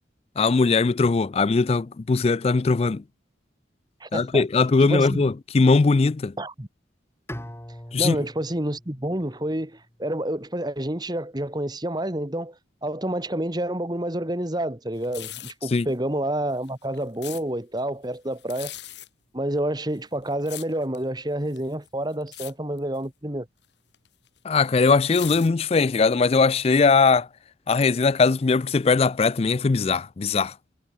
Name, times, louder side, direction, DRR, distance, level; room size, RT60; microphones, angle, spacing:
voice 1, 0.4-3.0 4.1-6.3 7.9-8.2 15.7-15.9 24.4-27.3 27.7-30.5, left 4 dB, 30° left, 0.3 m, -20 dB
voice 2, 4.0-4.4 4.8-5.3 6.4-6.7 8.0-12.5 12.8-18.7 19.3-23.5, right 1 dB, 20° right, 1.6 m, -28 dB
Bowed string instrument, 7.3-10.3, equal, 15° left, 3.4 m, -42 dB
sound 1, 15.0-15.7 16.5-17.4 18.4-19.1 19.9-21.0 21.5-21.9 22.2-22.5 22.8-23.0 23.9-26.0 26.5-26.6, left 13 dB, 60° left, 6.5 m, -39 dB
head